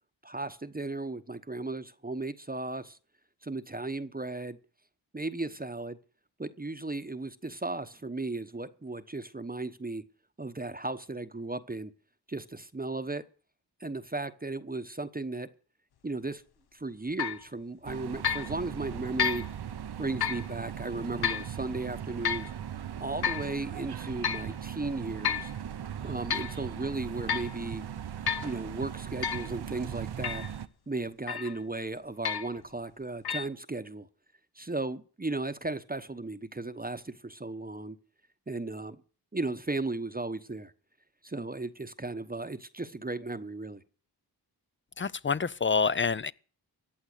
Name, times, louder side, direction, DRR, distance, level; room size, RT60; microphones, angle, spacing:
voice 1, 0.2-3.0 3.4-4.6 5.1-6.0 6.4-10.0 10.4-11.9 12.3-13.2 13.8-15.5 16.0-16.4 16.7-19.5 20.0-22.5 23.0-25.5 26.0-27.8 28.4-30.5 30.9-34.1 34.5-38.0 38.5-39.0 39.3-40.7 41.2-43.8, right 2 dB, 20° right, 1.0 m, -35 dB
sound 1, 17.2-17.4 18.2-18.5 19.2-19.5 20.2-20.5 21.2-21.5 22.2-22.5 23.2-23.5 24.2-24.5 25.2-25.5 26.1-26.6 27.3-27.5 28.3-28.5 29.2-29.5 30.2-30.5 31.3-31.6 32.2-32.6 33.2-33.5, left 7 dB, 65° left, 0.8 m, -31 dB
sound 2, 17.8-30.7, right 9 dB, 70° right, 0.8 m, -39 dB
voice 2, 45.0-46.3, left 5 dB, 30° left, 0.6 m, -27 dB
14.5 x 8.9 x 6.7 m
cardioid pair, 50°, 41 cm